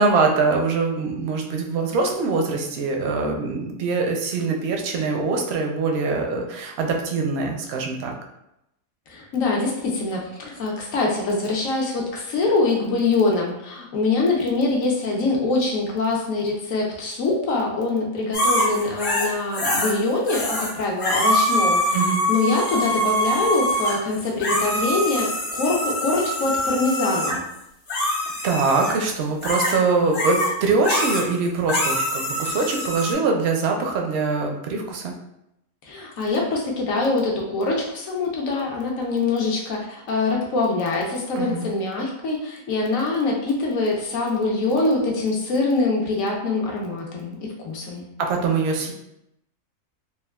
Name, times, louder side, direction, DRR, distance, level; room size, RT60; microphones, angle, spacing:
voice 1, 0.0-8.1 21.9-22.2 28.4-35.1 41.3-41.7 48.3-48.9, right 4 dB, 65° right, 2 dB, 0.6 m, -23 dB
voice 2, 9.1-27.4 35.8-47.4 47.6-48.1, left 3 dB, 70° left, -1 dB, 1.1 m, -24 dB
sound 1, 18.3-19.9 20.2-20.7 21.0-27.4 27.9-29.0 29.4-29.8 30.1-30.5 30.8-31.3 31.7-33.1, equal, 45° left, 0.8 m, -24 dB
3.5 x 2.3 x 2.2 m, 0.84 s
omnidirectional pair, 1.5 m